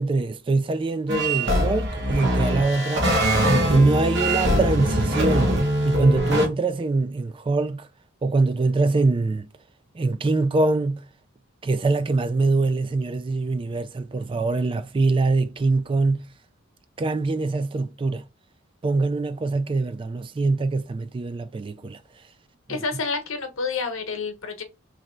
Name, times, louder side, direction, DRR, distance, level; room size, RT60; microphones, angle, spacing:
voice 1, 0.0-3.1 3.5-5.6 5.8-7.9 8.2-9.5 10.0-11.0 11.6-16.3 17.0-18.2 18.8-22.0 22.7-22.8, right 3 dB, 25° right, 0.3 m, -23 dB
sound 1, 1.1-6.5, equal, 60° right, 1.1 m, -22 dB
voice 2, 22.7-24.6, left 4 dB, 85° left, 1.0 m, -29 dB
3.2 x 3.1 x 3.7 m
head